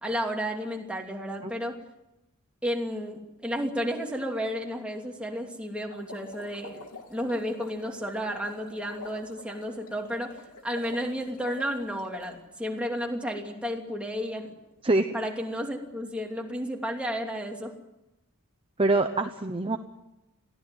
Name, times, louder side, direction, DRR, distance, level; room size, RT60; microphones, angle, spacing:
voice 1, 0.0-1.8 2.6-6.8 7.1-14.5 15.1-17.7, equal, 5° right, 1 dB, 2.8 m, -32 dB
sound 1, 5.9-12.4, left 3 dB, 85° left, 3.1 m, -46 dB
voice 2, 14.8-15.2 18.8-19.8, right 2 dB, 25° right, 6 dB, 0.9 m, -24 dB
22.0 x 16.0 x 9.1 m, 0.94 s
head